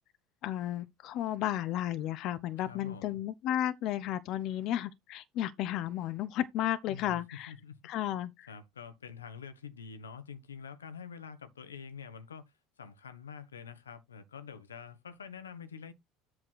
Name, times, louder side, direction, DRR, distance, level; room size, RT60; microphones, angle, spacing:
voice 1, 0.4-7.5 7.8-8.5, left 12 dB, 55° left, 0.8 m, -33 dB
voice 2, 2.7-3.2 6.9-7.2 7.5-7.8 8.5-12.4 12.8-15.9, left 6 dB, 90° left, 1.1 m, -46 dB
7.9 x 3.5 x 6.3 m
hypercardioid pair, 75°, 0 cm